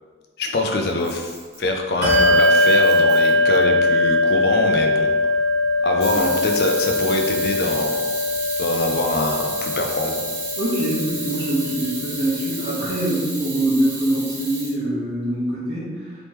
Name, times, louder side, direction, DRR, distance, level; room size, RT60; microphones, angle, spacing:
voice 1, 0.4-5.1 5.8-8.1 8.6-10.3, left 2 dB, 60° left, 3 dB, 0.4 m, -24 dB
Camera, 0.9-1.6 2.1-3.6 6.0-14.7, right 2 dB, 40° right, 1.2 m, -32 dB
Bell, 2.0-12.0, left 2 dB, 55° right, 1.4 m, -20 dB
voice 2, 10.6-16.2, right 1 dB, 80° right, -10 dB, 1.1 m, -24 dB
3.4 x 3.0 x 3.0 m, 1.5 s
head